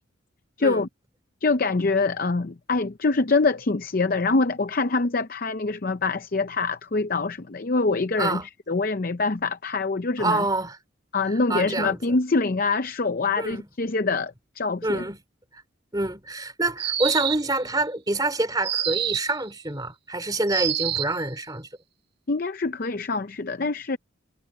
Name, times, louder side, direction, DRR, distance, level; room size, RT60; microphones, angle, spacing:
voice 1, 0.6-0.9 1.4-8.4 8.7-10.4 11.1-15.0 22.3-24.0, left 3 dB, 45° left, 0.6 m, -25 dB
voice 2, 8.2-8.5 10.2-10.8 11.3-12.0 13.4-13.7 14.8-15.2 15.5-15.6 15.9-21.7, right 2 dB, 20° right, 3.5 m, -27 dB
sound 1, 16.8-17.6 18.6-19.4 20.5-21.2, right 10 dB, 55° right, 1.1 m, -27 dB
head